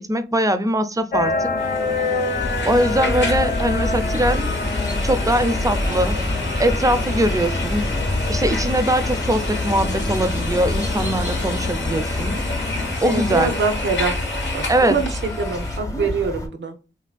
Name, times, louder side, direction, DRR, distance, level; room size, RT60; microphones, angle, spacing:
voice 1, 0.0-1.5 2.7-4.5 5.0-6.2 6.6-7.9 8.3-12.4 13.0-13.5 14.7-15.0, right 1 dB, 20° right, 0.4 m, -21 dB
sound 1, 1.1-12.9, left 3 dB, 55° left, 0.4 m, -28 dB
sound 2, 1.6-15.8, left 2 dB, 85° left, 0.7 m, -31 dB
sound 3, 2.3-16.5, left 1 dB, 20° left, 0.7 m, -27 dB
voice 2, 13.0-14.2 14.5-16.8, right 4 dB, 90° right, 0.5 m, -24 dB
3.1 x 2.5 x 2.2 m
cardioid pair, 45°, 19 cm